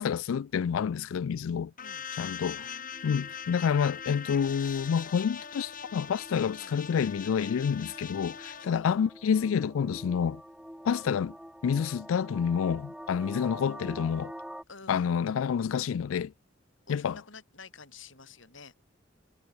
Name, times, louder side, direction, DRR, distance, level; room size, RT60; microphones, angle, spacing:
voice 1, 0.0-1.7 2.2-2.6 3.0-10.4 10.8-11.3 11.6-14.3 14.9-16.3 16.9-17.2, left 7 dB, 90° left, 0.4 m, -28 dB
sound 1, 1.8-8.7, left 8 dB, 45° left, 2.1 m, -41 dB
voice 2, 2.4-3.1 6.5-6.7 8.6-8.9 14.7-15.2 16.9-18.7, left 4 dB, 70° left, 5.0 m, -50 dB
sound 2, 2.7-14.6, equal, 5° right, 7.2 m, -47 dB
head